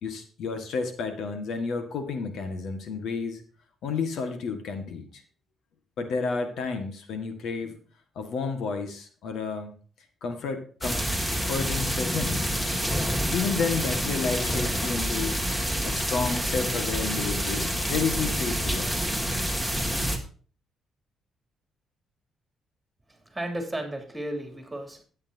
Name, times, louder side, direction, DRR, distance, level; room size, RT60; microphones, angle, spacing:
voice 1, 0.0-3.4 3.8-5.2 6.0-7.8 8.2-9.7 10.2-11.0 11.4-12.6 13.3-15.4 15.8-18.9, left 5 dB, 75° left, 6 dB, 1.8 m, -31 dB
sound 1, 10.8-20.2, equal, 10° left, 2.2 m, -28 dB
voice 2, 23.1-25.0, right 1 dB, 10° right, 4 dB, 3.0 m, -34 dB
13.0 x 8.9 x 2.8 m, 0.41 s
cardioid pair, 90°, 0 cm